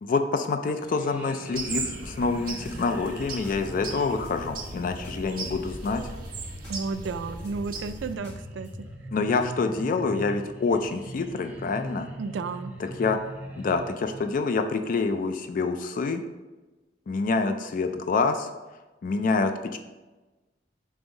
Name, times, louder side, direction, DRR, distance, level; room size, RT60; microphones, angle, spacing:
voice 1, 0.0-6.1 9.1-12.1 12.8-13.2 13.6-16.2 17.1-18.5 19.0-19.8, left 4 dB, 50° left, 7 dB, 0.4 m, -27 dB
sound 1, 0.8-14.3, right 1 dB, 10° right, 0.6 m, -42 dB
sound 2, 1.5-8.1, right 3 dB, 50° right, 1.0 m, -37 dB
sound 3, 2.6-5.6 5.8-8.8, left 1 dB, 70° left, 2.0 m, -50 dB
voice 2, 6.7-8.7 12.2-12.7, right 4 dB, 85° right, 12 dB, 0.4 m, -32 dB
5.4 x 3.4 x 5.2 m, 1.2 s
head